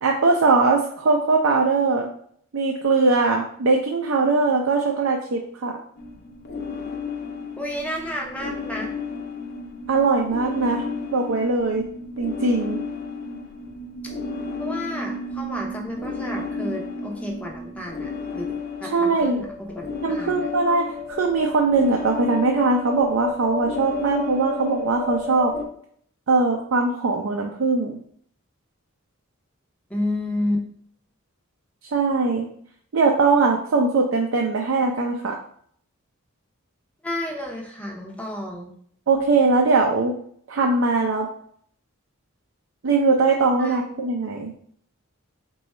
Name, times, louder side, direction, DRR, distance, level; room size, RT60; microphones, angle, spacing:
voice 1, 0.0-2.1 2.5-5.8 9.9-11.8 12.2-12.8 18.8-19.4 20.0-25.6 26.3-28.0 31.9-32.5 32.9-35.3 39.1-40.2 40.5-41.3 42.8-44.5, right 3 dB, 70° right, 0 dB, 0.5 m, -21 dB
sound 1, 6.0-25.6, left 4 dB, 50° left, 0.5 m, -32 dB
voice 2, 7.6-8.9 14.6-18.5 18.8-20.5 29.9-30.6 37.0-38.7 43.6-43.8, left 1 dB, 5° left, 0 dB, 0.6 m, -31 dB
3.9 x 2.3 x 4.1 m, 0.62 s
head